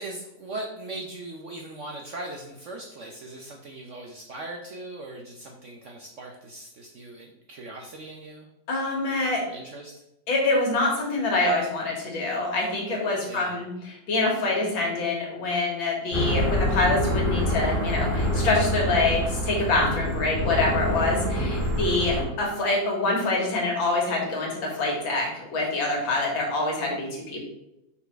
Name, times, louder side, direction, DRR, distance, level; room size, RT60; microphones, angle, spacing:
voice 1, 0.0-8.5 9.5-9.9 13.3-13.6 22.1-22.4, right 2 dB, 60° right, 1 dB, 0.8 m, -39 dB
voice 2, 8.7-9.4 10.3-27.4, left 2 dB, 90° left, -1 dB, 2.5 m, -25 dB
sound 1, 16.1-22.2, equal, 15° left, 1.9 m, -26 dB
5.7 x 4.2 x 4.5 m, 0.87 s
omnidirectional pair, 2.1 m